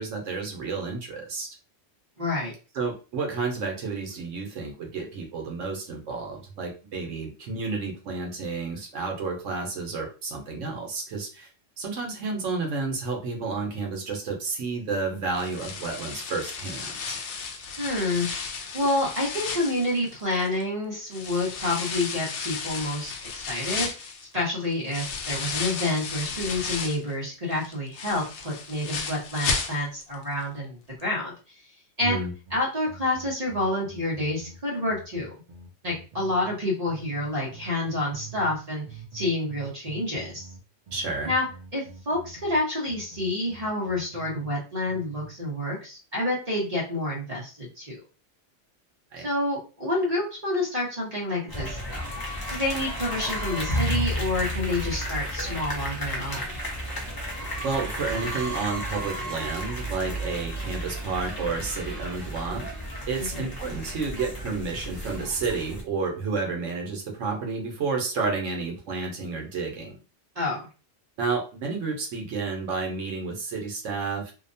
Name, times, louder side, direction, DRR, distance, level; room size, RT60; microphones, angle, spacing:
voice 1, 0.0-1.5 2.7-11.5 11.8-17.2 32.0-32.3 40.9-41.3 49.1-49.3 57.6-62.7 63.1-70.0 71.2-74.3, right 4 dB, 75° right, 2 dB, 1.1 m, -31 dB
voice 2, 2.2-2.5 17.8-31.3 32.0-32.2 32.5-35.3 35.8-40.5 41.2-41.4 41.7-48.0 49.2-52.1 52.5-56.6 63.2-63.5 70.3-70.6, left 1 dB, 35° right, -4 dB, 0.9 m, -28 dB
sound 1, 15.3-20.6 21.1-27.1 27.5-30.1 30.4-30.5 31.0-31.1, left 5 dB, 70° left, 0.9 m, -34 dB
sound 2, 32.5-36.6 36.9-38.6 38.9-44.6 44.9-45.3, right 4 dB, 55° right, 0.5 m, -45 dB
sound 3, 51.5-65.8, equal, 30° left, 0.4 m, -32 dB
2.7 x 2.1 x 2.6 m, 0.34 s
omnidirectional pair, 1.3 m